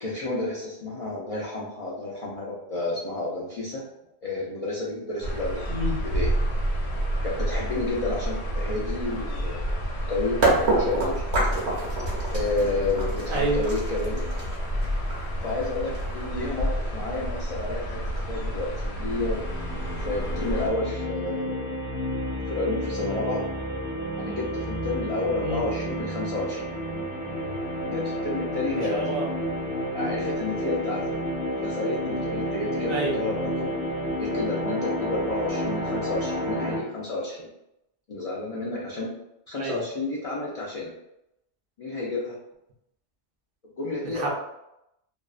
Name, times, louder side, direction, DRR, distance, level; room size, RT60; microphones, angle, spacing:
voice 1, 0.0-3.9 4.2-5.7 6.0-6.3 7.2-9.7 10.1-11.2 12.3-14.3 15.4-19.5 20.0-21.8 22.5-23.4 24.2-26.7 27.8-29.0 29.9-31.2 31.6-33.7 34.2-37.5 38.1-39.1 39.5-40.9 41.8-42.4 43.8-44.3, left 2 dB, 60° left, -5 dB, 0.4 m, -30 dB
sound 1, 5.2-20.7, equal, 75° left, 0.8 m, -30 dB
voice 2, 5.7-6.0 13.3-13.6 25.4-25.6 28.9-29.2 32.9-33.1 39.6-39.8 44.1-44.3, right 2 dB, 60° right, -2 dB, 0.7 m, -28 dB
sound 2, 10.0-10.1 10.4-16.3, right 2 dB, 75° right, 1.1 m, -27 dB
sound 3, 18.9-36.8, equal, 10° right, 0.5 m, -31 dB
2.6 x 2.0 x 2.4 m, 0.85 s
omnidirectional pair, 1.1 m